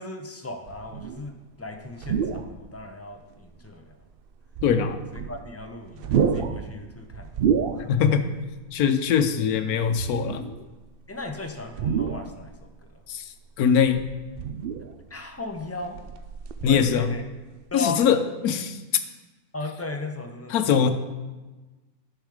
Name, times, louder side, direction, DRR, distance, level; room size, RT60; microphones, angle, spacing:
voice 1, 0.0-4.0 5.2-7.3 7.8-7.9 11.1-12.7 15.1-16.0 16.6-17.2 17.7-18.1 19.5-20.9, left 2 dB, 20° left, 4 dB, 0.4 m, -36 dB
sound 1, 0.7-1.3 1.9-2.7 3.3-3.4 4.4-5.6 5.9-8.2 8.5-8.7 9.9-10.7 11.7-12.7 13.7-15.1 15.6-17.3 17.6-17.8, right 7 dB, 85° right, 0.5 m, -29 dB
voice 2, 4.6-5.0 7.9-8.3 8.7-10.5 13.1-13.2 13.6-14.0 16.6-17.1 17.7-18.8 20.5-20.9, left 7 dB, 85° left, 9 dB, 1.2 m, -22 dB
10.5 x 6.3 x 4.9 m, 1.2 s
omnidirectional pair, 1.5 m